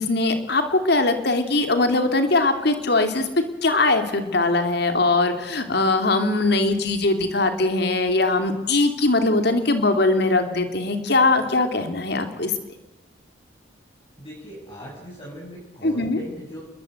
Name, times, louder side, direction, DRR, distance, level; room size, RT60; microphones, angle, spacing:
voice 1, 0.0-3.3 3.6-12.5 15.8-16.2, left 2 dB, 60° left, 7 dB, 3.0 m, -21 dB
voice 2, 14.2-16.6, equal, 30° left, -5 dB, 7.9 m, -39 dB
30.0 x 21.0 x 8.1 m, 1.0 s
head